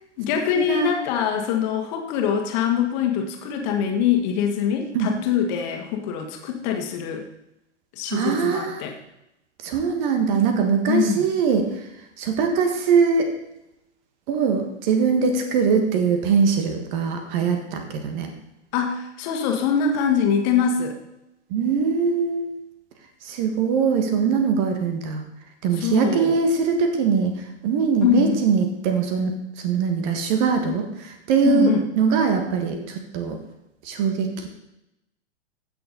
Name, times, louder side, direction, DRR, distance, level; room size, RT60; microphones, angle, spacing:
voice 1, 0.2-7.3 8.0-9.0 10.9-11.2 18.7-21.0 25.7-26.4 28.0-28.4 31.5-31.8, left 8 dB, 40° left, 3 dB, 1.9 m, -23 dB
voice 2, 8.1-8.8 9.6-11.7 12.2-13.3 14.3-18.3 21.5-22.5 23.2-25.2 25.6-27.4 27.6-29.3 29.6-31.7 32.0-33.4 33.8-34.5, right 5 dB, 40° right, 5 dB, 1.8 m, -22 dB
15.0 x 6.7 x 4.1 m, 0.86 s
figure-of-eight pair, 100°, 35 cm